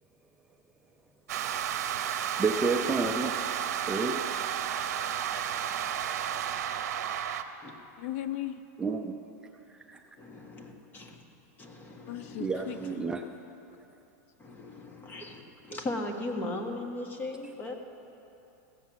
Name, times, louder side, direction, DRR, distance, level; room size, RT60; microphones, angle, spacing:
sound 1, 1.3-7.4, right 9 dB, 80° right, 0.7 m, -32 dB
voice 1, 2.4-3.3 3.9-4.3 8.8-9.1 9.9-10.0 12.4-13.2 15.7-15.8, right 4 dB, 10° right, 3 dB, 0.5 m, -29 dB
voice 2, 8.0-8.6 12.1-13.0 14.6-14.8, left 13 dB, 60° left, 12 dB, 0.4 m, -37 dB
voice 3, 10.2-11.2 11.6-12.9 14.4-15.4 15.7-17.7, left 2 dB, 20° left, 3 dB, 1.3 m, -38 dB
16.0 x 7.5 x 7.2 m, 2.9 s
supercardioid pair, 145°, 9 cm